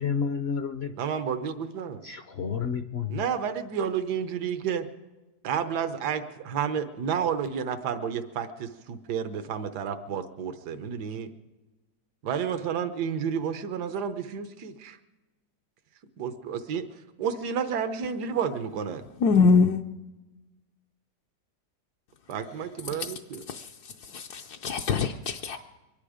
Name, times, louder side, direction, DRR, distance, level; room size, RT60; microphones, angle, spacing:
voice 1, 0.0-0.9 2.0-3.2, left 6 dB, 55° left, 0.7 m, -30 dB
voice 2, 1.0-2.0 3.1-4.9 5.4-11.3 12.2-15.0 16.2-19.0 22.3-23.4, right 7 dB, 85° right, 1.5 m, -31 dB
voice 3, 19.2-19.8 23.0-23.1 23.5-25.6, left 5 dB, 75° left, 1.2 m, -24 dB
24.0 x 10.5 x 4.9 m
omnidirectional pair, 1.7 m